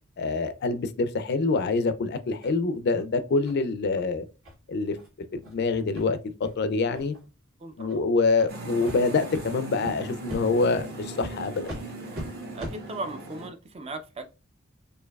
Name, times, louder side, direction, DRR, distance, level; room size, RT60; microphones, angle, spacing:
voice 1, 0.2-4.2 4.7-5.0 5.3-7.1 7.8-11.7, left 3 dB, 50° left, 0.4 m, -26 dB
sound 1, 2.4-2.5 3.0-3.1 3.4-3.6 3.9-4.0 4.4-4.5 4.9-5.1 5.4-5.5 5.9-6.0 6.4-6.6 6.9-7.2 7.8-8.0 8.4-8.5 8.8-9.0 9.3-9.4 9.8-9.9 10.3-10.4 10.8-10.9 11.2-11.3 11.6-11.8 12.1-12.2 12.6-12.7, equal, 85° right, 1.8 m, -39 dB
voice 2, 7.6-8.0 12.5-14.3, right 2 dB, 30° right, 0.4 m, -37 dB
sound 2, 8.5-13.5, right 2 dB, 50° right, 1.0 m, -39 dB
4.4 x 2.6 x 2.3 m
head